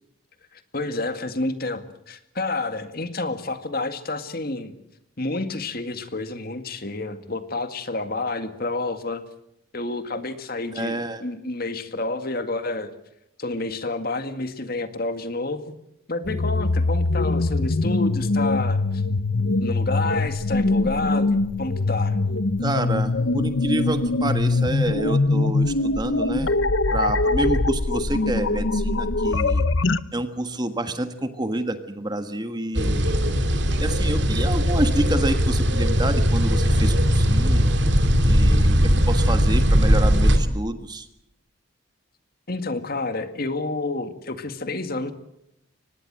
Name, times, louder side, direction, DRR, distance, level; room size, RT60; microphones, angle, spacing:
voice 1, 0.5-4.7 5.2-9.2 9.7-12.9 13.4-15.7 16.1-19.0 19.6-22.2 42.5-45.1, left 2 dB, 45° left, 9 dB, 2.0 m, -29 dB
voice 2, 10.7-11.2 22.6-26.5 26.9-29.6 30.1-33.1 33.8-37.8 38.2-38.8 39.1-41.1, right 1 dB, 20° right, 9 dB, 1.4 m, -28 dB
sound 1, 16.3-30.0, left 2 dB, 65° left, 0.8 m, -22 dB
sound 2, 32.7-40.4, equal, 55° right, 2.6 m, -19 dB
24.5 x 20.0 x 7.6 m, 0.79 s
head